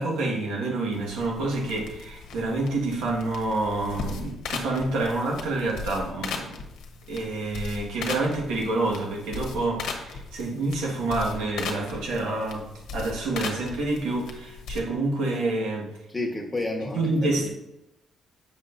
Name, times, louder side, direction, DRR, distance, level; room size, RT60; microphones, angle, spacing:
voice 1, 0.0-6.6 7.1-12.7 12.9-15.9 16.9-17.5, right 2 dB, 90° right, -2 dB, 1.6 m, -28 dB
sound 1, 0.9-14.8, left 5 dB, 85° left, 1.1 m, -38 dB
voice 2, 16.1-17.5, left 2 dB, 20° left, 1 dB, 1.3 m, -31 dB
7.5 x 6.3 x 2.6 m, 0.91 s
cardioid pair, 85°, 0 cm